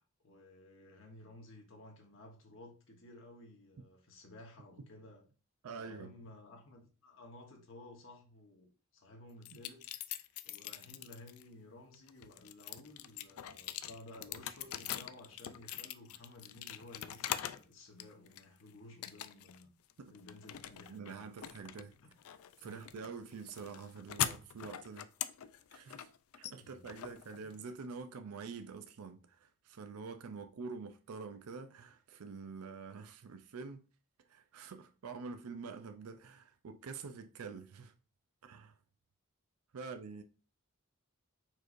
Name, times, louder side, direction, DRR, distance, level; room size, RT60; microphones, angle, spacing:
voice 1, 0.0-5.2 5.8-9.8 10.4-19.7 20.1-21.3 22.0-22.1 22.6-22.8 26.6-26.9 27.4-27.5, left 2 dB, 60° left, 1.1 m, -55 dB
voice 2, 5.6-6.1 9.5-9.6 20.0-20.1 20.9-21.9 22.6-25.1 25.7-33.8 34.2-37.9 38.4-38.8 39.7-40.2, right 5 dB, 85° right, 0.5 m, -46 dB
sound 1, 9.4-11.4 11.9-17.7 18.0-18.6 19.0-19.6 19.9-27.8, left 11 dB, 75° left, 0.4 m, -42 dB
4.6 x 4.5 x 2.5 m
head